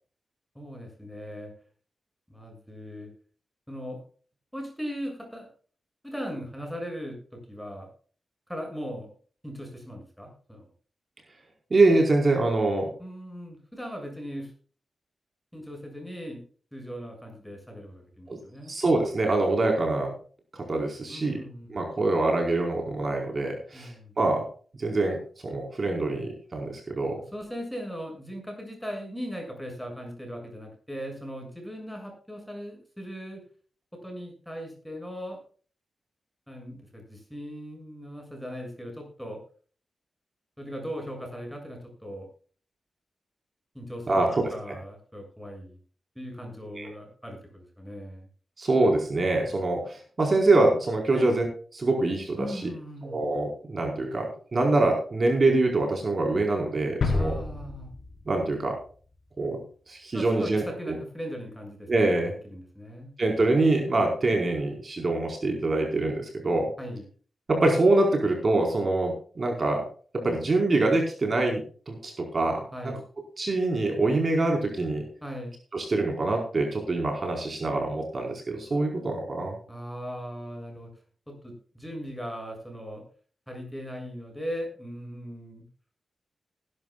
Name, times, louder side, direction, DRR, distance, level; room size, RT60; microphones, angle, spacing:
voice 1, 0.5-1.5 2.3-3.1 3.7-4.0 4.5-5.5 6.0-7.9 8.5-9.1 9.4-10.7 13.0-14.5 15.5-16.4 16.7-18.7 21.1-21.7 23.7-24.1 27.3-33.4 34.0-35.4 36.5-39.4 40.6-42.3 43.7-45.8 46.2-48.3 51.1-51.4 52.4-53.2 57.1-57.9 60.1-61.9 62.4-63.1 66.8-67.0 72.7-73.0 75.2-75.5 79.7-80.9 81.3-83.0 83.5-85.6, equal, ahead, 2 dB, 7.2 m, -38 dB
voice 2, 11.7-12.9 18.3-18.4 18.7-20.1 20.5-21.4 21.7-24.4 24.8-27.2 44.1-44.5 46.7-46.9 48.6-51.5 51.7-52.5 53.1-57.4 58.3-58.7 59.4-59.6 59.9-60.9 61.9-62.3 63.2-66.7 67.5-69.9 70.1-72.9 73.4-75.0 75.7-79.6, right 2 dB, 40° right, 2 dB, 4.6 m, -25 dB
sound 1, 57.0-58.8 59.1-59.2, left 3 dB, 70° left, 4.6 m, -30 dB
20.0 x 12.0 x 2.4 m, 0.42 s
wide cardioid pair, 105°, 0 cm